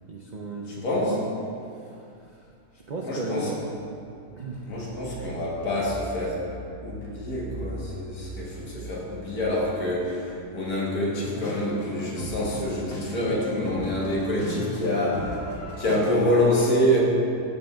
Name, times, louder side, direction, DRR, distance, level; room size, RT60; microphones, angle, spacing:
voice 1, 0.1-1.2 1.7-2.5 2.7-3.6 4.4-4.7, right 2 dB, 70° right, -1 dB, 0.4 m, -36 dB
voice 2, 0.8-1.2 3.0-3.5 4.7-6.4 6.8-15.4 15.8-17.0, equal, 90° left, -4 dB, 1.8 m, -26 dB
sound 1, 11.2-16.2, left 2 dB, 65° left, 1.5 m, -37 dB
14.0 x 5.3 x 2.3 m, 2.6 s
omnidirectional pair, 1.5 m